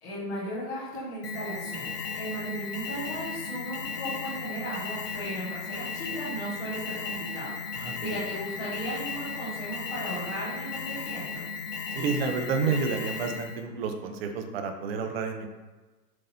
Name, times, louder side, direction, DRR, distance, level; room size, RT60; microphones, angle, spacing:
voice 1, 0.0-11.4, equal, 5° left, -11 dB, 0.4 m, -36 dB
Alarm, 1.2-13.6, left 5 dB, 65° left, 1.2 m, -36 dB
voice 2, 7.8-8.2 11.9-15.5, right 5 dB, 35° right, 5 dB, 0.8 m, -30 dB
7.8 x 5.3 x 2.8 m, 1.2 s
hypercardioid pair, 140°, 49 cm